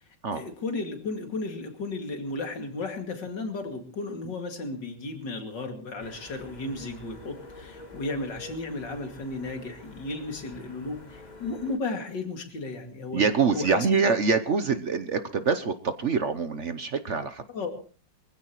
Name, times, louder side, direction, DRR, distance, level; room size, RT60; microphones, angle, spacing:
voice 1, 0.3-13.2 13.5-13.8 17.5-17.7, left 3 dB, 70° left, 4 dB, 3.1 m, -34 dB
sound 1, 6.0-11.8, left 2 dB, 25° left, 1.5 m, -47 dB
voice 2, 13.1-17.4, right 5 dB, 50° right, 10 dB, 0.9 m, -25 dB
23.5 x 15.5 x 3.1 m, 0.39 s
omnidirectional pair, 2.0 m